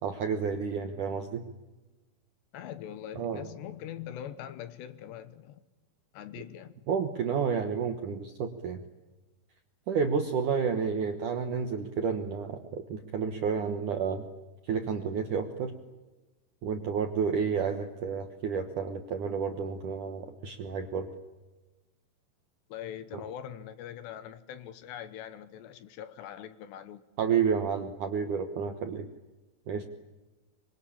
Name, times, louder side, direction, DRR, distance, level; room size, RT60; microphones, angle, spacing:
voice 1, 0.0-1.4 3.2-3.4 6.9-8.8 9.9-14.2 14.6-15.7 16.6-21.1 27.2-29.1 29.7-29.9, right 6 dB, 70° right, 6 dB, 2.0 m, -30 dB
voice 2, 2.5-5.6 6.1-6.8 22.7-27.0, left 10 dB, 75° left, 13 dB, 3.0 m, -42 dB
25.5 x 24.0 x 8.7 m, 1.1 s
omnidirectional pair, 5.5 m